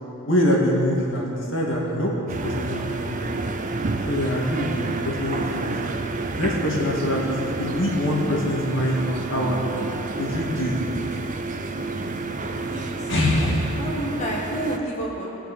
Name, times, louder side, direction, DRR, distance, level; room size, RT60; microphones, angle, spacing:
voice 1, 0.3-2.1 2.4-3.4 4.1-5.7 6.4-9.6 10.2-10.8 13.1-13.8, left 1 dB, 55° left, -3 dB, 2.1 m, -24 dB
sound 1, 2.3-14.8, right 3 dB, 35° right, 0.5 m, -30 dB
voice 2, 12.6-13.1 13.8-15.4, right 1 dB, 30° left, -3 dB, 1.6 m, -30 dB
16.5 x 8.6 x 4.3 m, 3.0 s
head